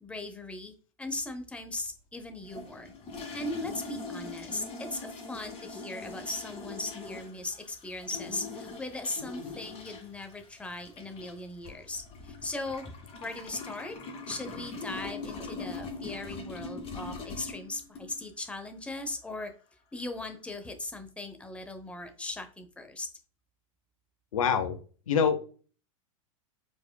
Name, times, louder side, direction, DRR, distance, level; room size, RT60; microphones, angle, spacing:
voice 1, 0.0-12.9 13.2-14.0 14.3-19.5 19.9-23.1, left 2 dB, 5° left, 7 dB, 0.8 m, -38 dB
sound 1, 2.4-18.3, left 3 dB, 35° left, 2.0 m, -42 dB
voice 2, 24.3-24.8 25.1-25.4, left 7 dB, 85° left, 10 dB, 0.8 m, -25 dB
4.9 x 4.2 x 2.3 m, 0.38 s
hypercardioid pair, 115°, 17 cm